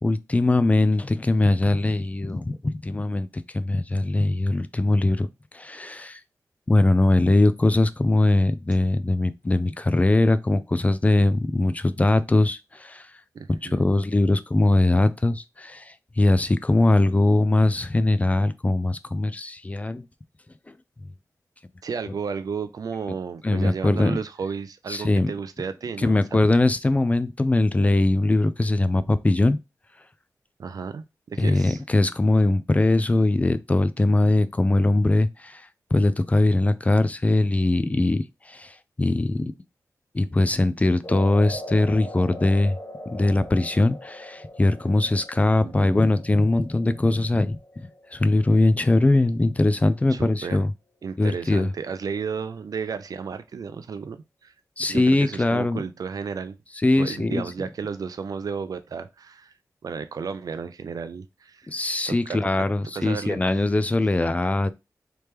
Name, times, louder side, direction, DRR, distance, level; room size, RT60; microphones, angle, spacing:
voice 1, 0.0-3.3 3.5-5.3 5.5-6.2 6.7-13.1 13.5-20.0 23.4-24.2 24.9-25.3 26.0-29.6 31.4-39.5 40.1-42.8 43.1-47.6 48.1-50.7 51.2-51.7 54.8-55.8 56.8-57.4 61.7-64.7, left 2 dB, 20° left, 0.3 m, -21 dB
voice 2, 13.3-13.9 21.8-26.2 30.6-31.8 45.6-46.0 50.1-50.6 51.0-54.5 54.9-56.6 57.0-59.5 59.8-61.7 62.1-62.6 62.9-63.4 64.4-64.5, right 6 dB, 70° right, 0.4 m, -33 dB
sound 1, 41.0-49.4, left 1 dB, 55° left, 1.2 m, -41 dB
3.4 x 3.0 x 3.2 m
wide cardioid pair, 80°, 6 cm